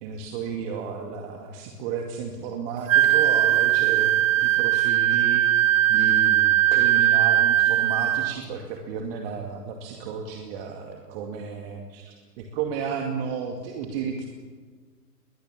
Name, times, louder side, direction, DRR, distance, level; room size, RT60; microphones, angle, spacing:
voice 1, 0.0-5.4 5.9-14.3, right 6 dB, 35° right, 2 dB, 2.3 m, -33 dB
Wind instrument woodwind instrument, 2.9-8.4, right 12 dB, 50° right, 0.6 m, -20 dB
21.5 x 18.5 x 7.5 m, 1.5 s
figure-of-eight pair, 125°, 49 cm